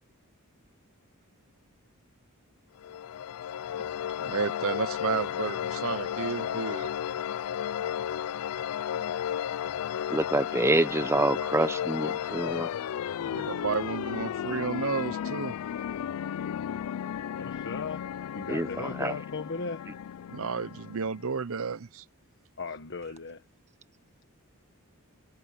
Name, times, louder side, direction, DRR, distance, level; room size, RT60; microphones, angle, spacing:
sound 1, 2.8-21.4, left 9 dB, 75° left, 0.3 m, -34 dB
voice 1, 4.2-6.9 13.2-15.5 20.3-22.0, right 5 dB, 70° right, 0.8 m, -32 dB
voice 2, 10.1-12.7 18.5-19.2, right 2 dB, 10° right, 0.8 m, -27 dB
voice 3, 17.4-18.1 18.3-19.8 22.6-23.4, left 4 dB, 55° left, 1.3 m, -37 dB
voice 4, 23.7-24.3, right 6 dB, 30° right, 1.7 m, -65 dB
head